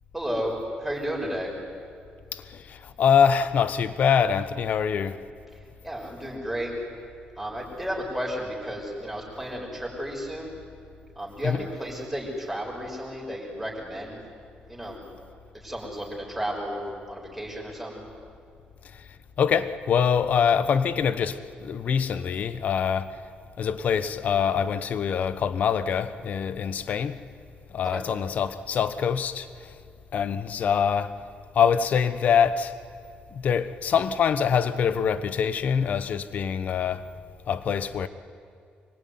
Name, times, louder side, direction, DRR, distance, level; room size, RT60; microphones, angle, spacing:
voice 1, 0.1-1.5 5.5-6.7 7.4-10.5 11.2-14.2 14.7-15.0 15.5-16.8 17.1-18.0 27.8-28.0, equal, ahead, 6.2 m, -33 dB
voice 2, 2.3-5.2 11.4-11.6 18.9-19.0 19.4-23.2 23.6-27.2 27.7-29.7 30.1-31.2 31.5-32.7 33.3-37.1 37.5-38.1, left 7 dB, 50° left, 1.1 m, -24 dB
25.5 x 23.5 x 9.6 m
cardioid pair, 160°, 3 cm